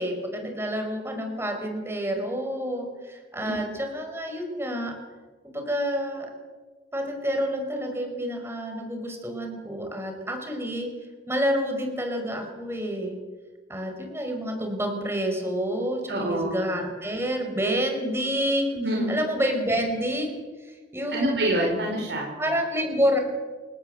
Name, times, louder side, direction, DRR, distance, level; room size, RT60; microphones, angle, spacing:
voice 1, 0.0-5.0 5.4-6.3 6.9-10.9 11.3-13.2 13.7-18.8 19.1-21.6 22.4-23.2, equal, 15° right, 4 dB, 5.5 m, -28 dB
voice 2, 16.1-16.5 18.7-19.2 21.1-22.3, right 1 dB, 70° right, -1 dB, 4.6 m, -26 dB
28.5 x 18.0 x 8.0 m, 1.4 s
head